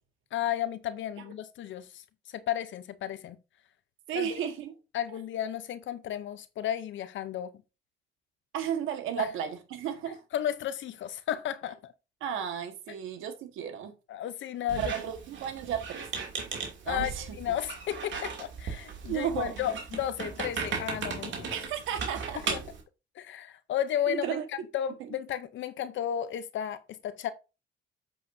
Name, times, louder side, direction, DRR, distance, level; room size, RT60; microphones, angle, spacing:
voice 1, 0.3-2.0 2.3-3.4 4.1-4.4 4.9-7.5 9.2-9.3 10.3-11.9 14.1-14.9 16.9-17.1 17.4-21.6 22.5-22.6 23.2-24.3 24.7-27.3, left 10 dB, 75° left, 0.8 m, -33 dB
voice 2, 4.1-4.7 8.5-10.2 12.2-13.9 14.8-16.1 16.8-17.3 19.1-19.6 21.5-22.4 24.1-24.5 25.0-25.1, right 9 dB, 90° right, 1.6 m, -33 dB
Squeak, 14.7-22.8, right 5 dB, 70° right, 2.7 m, -37 dB
8.0 x 7.4 x 2.7 m
cardioid pair, 90°, 20 cm